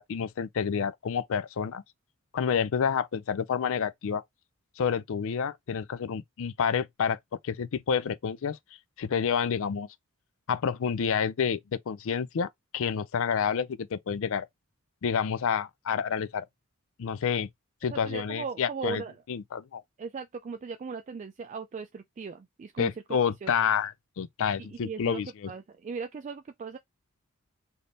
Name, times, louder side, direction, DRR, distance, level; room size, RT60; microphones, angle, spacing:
voice 1, 0.0-1.8 2.3-4.2 4.8-7.2 7.4-8.6 9.0-9.9 10.5-14.5 15.0-16.4 17.0-17.5 17.8-19.0 19.3-19.8 22.8-25.3, left 7 dB, 60° left, 0.4 m, -29 dB
voice 2, 17.9-19.1 20.0-22.9 23.4-23.5 24.6-26.8, right 5 dB, 35° right, 0.3 m, -38 dB
3.4 x 2.7 x 3.9 m
head